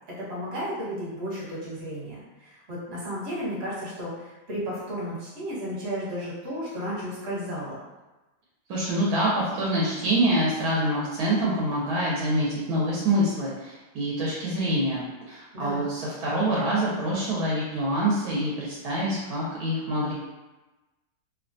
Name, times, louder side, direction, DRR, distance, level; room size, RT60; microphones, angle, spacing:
voice 1, 0.1-4.2 4.5-7.8 15.5-15.9, equal, 45° right, -8 dB, 1.2 m, -33 dB
voice 2, 8.7-20.1, right 1 dB, 75° right, -6 dB, 1.2 m, -26 dB
2.9 x 2.2 x 2.5 m, 1.1 s
omnidirectional pair, 1.7 m